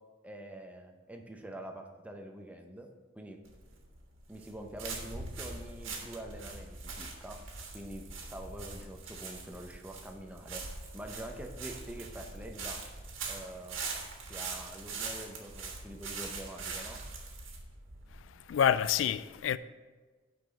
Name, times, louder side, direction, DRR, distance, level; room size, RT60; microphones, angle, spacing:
voice 1, 0.2-2.9 3.1-3.4 4.3-7.4 7.7-10.6 10.9-12.8 13.3-13.9 14.3-17.0, right 1 dB, 5° right, 0.7 m, -45 dB
sound 1, 3.5-19.0, right 4 dB, 85° right, 1.5 m, -42 dB
voice 2, 18.3-19.6, left 8 dB, 75° left, 0.3 m, -28 dB
5.9 x 5.1 x 6.8 m
head